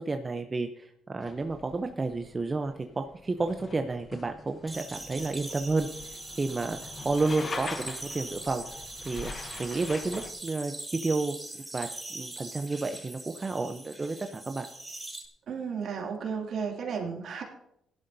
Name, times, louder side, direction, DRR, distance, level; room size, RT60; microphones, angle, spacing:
voice 1, 0.0-8.6 9.0-11.3 11.7-14.7, right 3 dB, 25° right, 6 dB, 0.7 m, -31 dB
sound 1, 1.2-10.3, left 4 dB, 40° left, 1.1 m, -43 dB
sound 2, 4.7-15.2, right 2 dB, 10° right, 2.7 m, -42 dB
voice 2, 15.5-17.4, right 6 dB, 65° right, 1 dB, 2.6 m, -33 dB
16.5 x 11.5 x 2.7 m, 0.77 s
cardioid pair, 90°, 0 cm